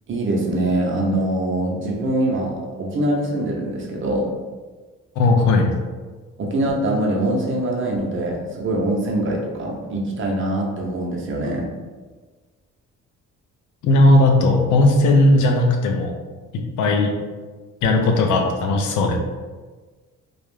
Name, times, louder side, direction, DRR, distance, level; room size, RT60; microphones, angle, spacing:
voice 1, 0.1-4.3 6.4-11.7, right 1 dB, 45° right, -1 dB, 0.6 m, -23 dB
voice 2, 5.2-5.7 13.8-16.1 16.5-17.1 17.8-19.2, left 2 dB, 80° left, 3 dB, 0.5 m, -17 dB
2.4 x 2.0 x 3.1 m, 1.4 s
cardioid pair, 95°, 29 cm